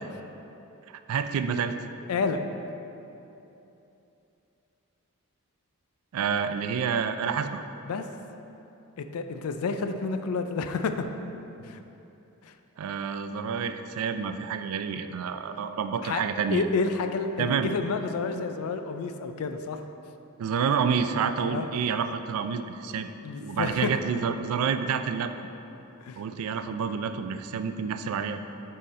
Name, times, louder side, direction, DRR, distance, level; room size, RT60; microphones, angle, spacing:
voice 1, 1.1-1.8 6.1-7.6 12.8-16.6 17.4-17.7 20.4-23.1 23.4-25.3 26.2-28.4, right 6 dB, 80° right, 10 dB, 0.3 m, -28 dB
voice 2, 2.1-2.4 7.8-8.0 9.0-11.1 11.6-11.8 12.4-12.5 16.0-16.2 16.5-19.8 21.5-21.7 23.2-23.9 26.0-26.2, left 4 dB, 90° left, 8 dB, 0.4 m, -29 dB
6.5 x 3.8 x 4.1 m, 2.9 s
head